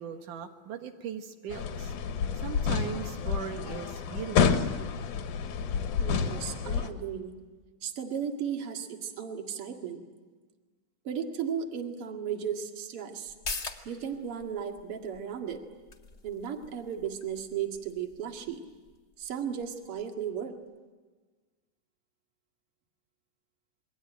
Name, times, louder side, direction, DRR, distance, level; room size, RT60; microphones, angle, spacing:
voice 1, 0.0-1.9 2.3-4.6, right 8 dB, 85° right, 5 dB, 3.0 m, -39 dB
sound 1, 1.5-6.9, left 6 dB, 85° left, 3.0 m, -29 dB
voice 2, 6.0-7.4 7.8-10.0 11.0-13.3 13.8-15.6 16.2-18.6 19.2-20.5, right 8 dB, 50° right, 4 dB, 2.8 m, -35 dB
sound 2, 13.3-20.4 20.7-20.8, left 3 dB, 25° left, 1.8 m, -45 dB
28.0 x 22.5 x 9.0 m, 1.3 s
omnidirectional pair, 3.5 m